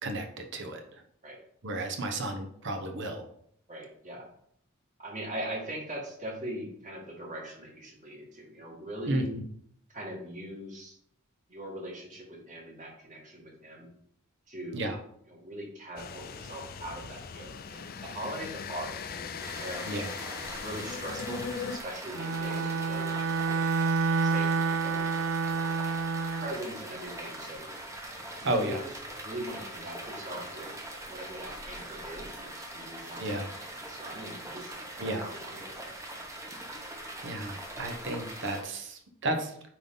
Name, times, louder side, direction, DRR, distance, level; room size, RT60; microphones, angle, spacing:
voice 1, 0.0-1.0 1.6-3.3 9.0-9.4 14.7-15.0 19.8-20.1 28.4-28.8 33.2-33.5 35.0-35.3 36.7-36.9 37.2-39.5, right 1 dB, 60° right, 4 dB, 1.0 m, -33 dB
voice 2, 3.7-4.3 5.0-9.3 9.9-11.0 11.5-13.9 14.5-14.9 15.3-19.9 20.6-23.7 24.2-25.1 25.4-25.6 26.4-27.6 28.4-28.9 29.2-30.7 31.1-35.9, right 1 dB, 35° right, -2 dB, 2.1 m, -41 dB
sound 1, 16.0-21.8, left 6 dB, 45° left, 0.5 m, -39 dB
sound 2, 19.4-38.6, right 1 dB, 15° right, 1.1 m, -42 dB
Bowed string instrument, 22.1-26.6, right 4 dB, 80° right, 0.4 m, -28 dB
9.3 x 3.9 x 3.8 m, 0.68 s
head